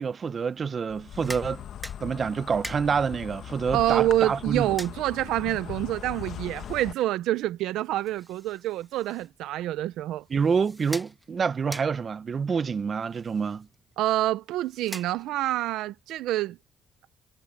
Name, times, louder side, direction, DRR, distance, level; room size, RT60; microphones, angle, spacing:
voice 1, 0.0-1.6 2.0-4.8 10.3-13.7, right 6 dB, 45° right, 0.8 m, -27 dB
Insect, 0.9-6.9, left 10 dB, 70° left, 1.4 m, -39 dB
sound 1, 0.9-15.6, right 1 dB, 5° right, 2.3 m, -46 dB
voice 2, 3.7-10.2 14.0-16.6, right 14 dB, 90° right, 0.7 m, -27 dB
cardioid pair, 90°, 0 cm